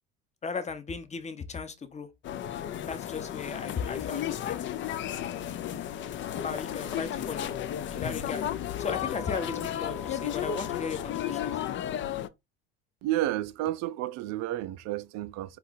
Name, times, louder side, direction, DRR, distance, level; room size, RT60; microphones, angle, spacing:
voice 1, 0.4-2.1 2.9-4.7 6.4-7.5 7.9-8.4 8.8-11.6, left 5 dB, 20° left, 0.9 m, -36 dB
sound 1, 2.2-12.3, left 10 dB, 40° left, 0.5 m, -34 dB
sound 2, 5.4-11.6, left 6 dB, 55° left, 0.9 m, -45 dB
voice 2, 13.0-15.6, right 14 dB, 60° right, 0.5 m, -31 dB
4.4 x 2.3 x 4.0 m
hypercardioid pair, 65°, 31 cm